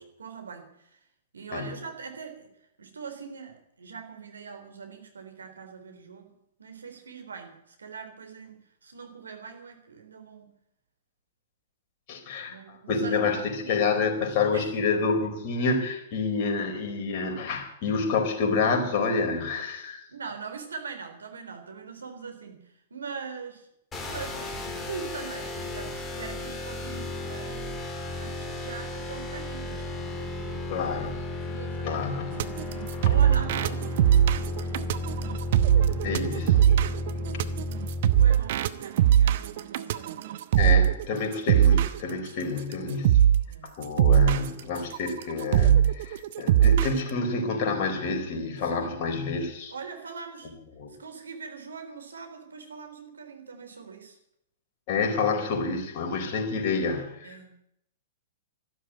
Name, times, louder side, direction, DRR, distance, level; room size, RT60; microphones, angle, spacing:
voice 1, 0.2-1.0 1.3-2.5 2.8-6.3 6.6-10.5 12.5-14.7 20.1-23.7 24.0-27.7 28.2-30.7 31.4-32.1 32.4-35.0 35.2-35.3 37.2-37.6 38.2-40.1 43.5-43.7 48.7-49.0 49.7-50.5 50.9-54.2 54.9-55.6 57.2-57.6, right 5 dB, 75° right, 6 dB, 3.8 m, -42 dB
voice 2, 12.1-20.0 30.7-31.2 31.8-32.4 33.0-33.1 36.0-36.7 40.6-43.3 43.8-49.7 50.8-50.9 54.9-57.4, left 4 dB, 45° left, 3 dB, 4.5 m, -28 dB
sound 1, 23.9-38.2, left 1 dB, 15° left, 3.4 m, -34 dB
sound 2, 32.4-42.0 42.6-42.7 43.0-43.4 43.8-47.0, right 10 dB, 55° right, 1.0 m, -21 dB
13.0 x 12.5 x 8.9 m, 0.76 s
figure-of-eight pair, 110°, 0 cm